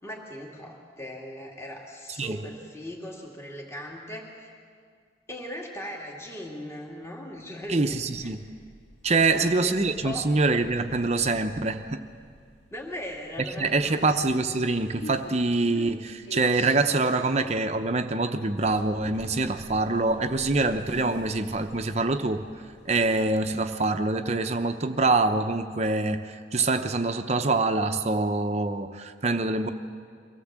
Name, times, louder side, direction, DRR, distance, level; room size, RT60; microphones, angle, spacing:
voice 1, 0.0-4.5 5.3-8.3 9.3-9.7 10.0-10.3 12.7-14.2, left 1 dB, 15° left, -1 dB, 2.2 m, -39 dB
voice 2, 7.7-8.4 9.0-12.0 13.6-22.4 22.9-29.7, right 3 dB, 40° right, 7 dB, 0.8 m, -25 dB
sound 1, 8.1-23.8, equal, 80° left, 1.8 m, -48 dB
24.0 x 17.0 x 7.4 m, 2.1 s
head